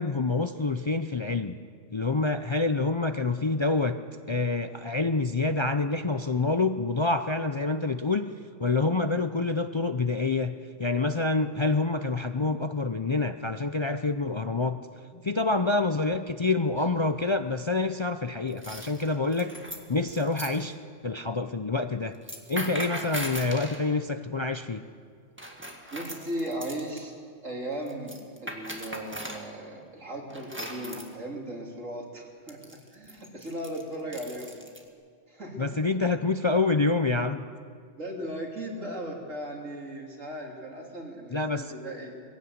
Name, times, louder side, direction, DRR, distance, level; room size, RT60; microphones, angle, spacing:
voice 1, 0.0-1.6 1.9-4.0 4.3-8.3 8.6-14.8 15.2-19.5 19.9-20.8 21.0-22.1 22.5-24.8 35.6-37.4 41.3-41.6, left 3 dB, 35° left, 8 dB, 0.4 m, -27 dB
sound 1, 16.7-17.1 18.5-20.6 22.1-23.8 25.4-27.0 27.9-29.5 30.3-31.1 32.5-34.8, equal, 10° right, 1.8 m, -39 dB
voice 2, 25.9-27.1 27.4-34.6 35.3-35.8 38.0-42.2, right 1 dB, 90° right, -1 dB, 3.6 m, -37 dB
21.5 x 16.5 x 8.0 m, 2.1 s
omnidirectional pair, 1.3 m